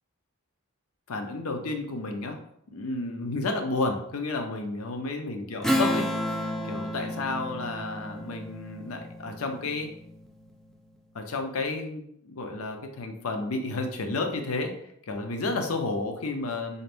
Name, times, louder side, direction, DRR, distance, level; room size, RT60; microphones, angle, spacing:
voice 1, 1.1-2.4 2.7-9.9 11.1-14.8 15.1-16.8, left 3 dB, 75° left, 5 dB, 0.6 m, -31 dB
Strum, 5.6-10.5, equal, ahead, 0.4 m, -31 dB
3.9 x 2.5 x 3.4 m, 0.72 s
head